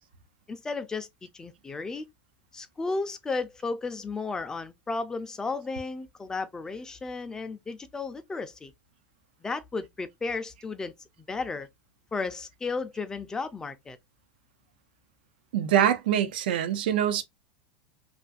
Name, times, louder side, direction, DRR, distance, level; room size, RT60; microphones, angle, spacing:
voice 1, 0.5-2.1 2.5-8.7 9.4-10.9 11.3-11.7 12.1-14.0, left 3 dB, 10° left, 0.4 m, -34 dB
voice 2, 15.5-17.2, right 10 dB, 80° right, 0.5 m, -24 dB
2.5 x 2.5 x 2.3 m
supercardioid pair, 130°, 5 cm